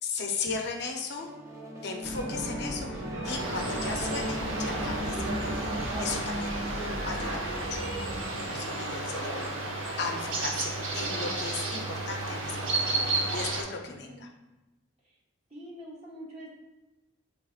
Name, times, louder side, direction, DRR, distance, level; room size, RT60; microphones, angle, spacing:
voice 1, 0.0-1.3 1.8-14.3, left 4 dB, 55° left, 2 dB, 0.6 m, -37 dB
sound 1, 1.2-6.3, right 1 dB, 15° right, 0.5 m, -40 dB
sound 2, 2.0-8.2, right 1 dB, 70° right, 1.4 m, -35 dB
sound 3, 3.2-13.6, right 2 dB, 85° right, 0.8 m, -33 dB
voice 2, 15.5-16.5, equal, 35° right, -5 dB, 1.2 m, -44 dB
6.3 x 3.4 x 2.4 m, 1.1 s
head